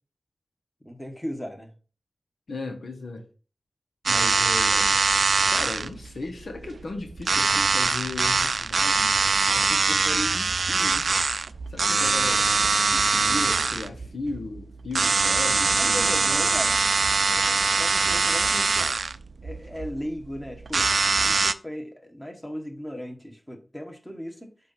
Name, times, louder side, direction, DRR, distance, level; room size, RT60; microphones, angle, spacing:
voice 1, 0.8-1.7 15.8-16.7 17.3-19.1 19.4-20.9 21.2-24.5, equal, 10° left, 1.6 m, -37 dB
voice 2, 2.5-3.2 4.0-5.0 5.5-9.2 9.5-11.1 11.7-12.5 12.9-16.5, left 3 dB, 70° left, 1.2 m, -36 dB
sound 1, 4.0-21.5, right 4 dB, 65° right, 0.4 m, -23 dB
7.7 x 2.8 x 5.8 m
cardioid pair, 50°, 0 cm